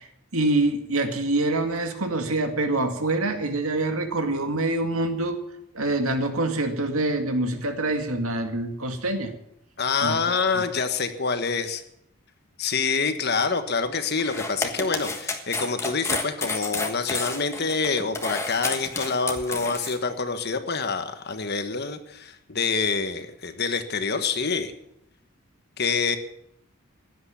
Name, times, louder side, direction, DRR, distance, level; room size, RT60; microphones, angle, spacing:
voice 1, 0.0-5.4 5.7-9.3 10.0-10.2, right 2 dB, 80° right, 6 dB, 2.2 m, -25 dB
voice 2, 9.8-11.8 12.6-24.7 25.8-26.2, left 4 dB, 50° left, 9 dB, 1.4 m, -26 dB
sound 1, 14.2-20.0, left 3 dB, 15° left, 1.5 m, -30 dB
16.0 x 11.0 x 7.2 m, 0.78 s
head